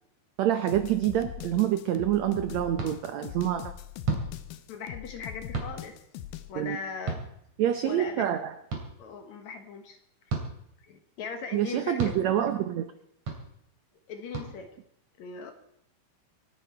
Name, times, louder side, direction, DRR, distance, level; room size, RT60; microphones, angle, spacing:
voice 1, 0.4-3.7 6.5-6.8 7.6-8.5 11.5-12.9, right 11 dB, 90° right, 9 dB, 1.5 m, -27 dB
sound 1, 0.7-6.5, left 12 dB, 85° left, 2.7 m, -41 dB
sound 2, 2.8-2.9 4.0-4.3 5.5-5.7 7.1-7.2 8.7-8.8 10.3-10.5 12.0-12.2 13.3-13.4 14.3-14.5, right 4 dB, 50° right, 3.9 m, -30 dB
voice 2, 4.7-6.0 6.5-7.2 7.8-8.2 9.0-10.0 10.8-12.2 14.1-14.8 15.2-15.5, left 5 dB, 60° left, 7 dB, 2.2 m, -39 dB
27.0 x 9.6 x 4.5 m, 0.76 s
omnidirectional pair, 4.2 m